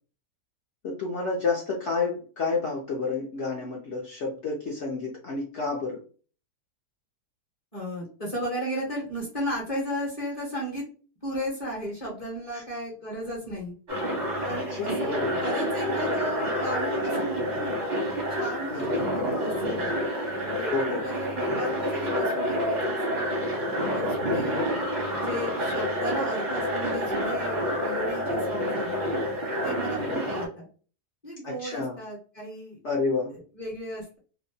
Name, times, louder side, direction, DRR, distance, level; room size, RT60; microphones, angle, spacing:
voice 1, 0.8-6.0 12.5-12.6 14.5-15.4 18.7-19.0 20.7-21.0 24.2-24.6 30.0-30.2 31.4-31.9 32.8-33.3, left 4 dB, 60° left, -2 dB, 0.7 m, -30 dB
voice 2, 7.7-10.8 11.2-13.7 14.4-17.8 18.3-19.9 20.3-20.7 21.0-23.4 23.9-24.6 25.1-29.0 29.6-30.7 31.2-32.8 33.3-34.2, equal, 30° left, -4 dB, 0.8 m, -35 dB
sound 1, 13.9-30.5, equal, 40° right, 0.6 m, -28 dB
2.7 x 2.1 x 2.6 m, 0.38 s
omnidirectional pair, 1.8 m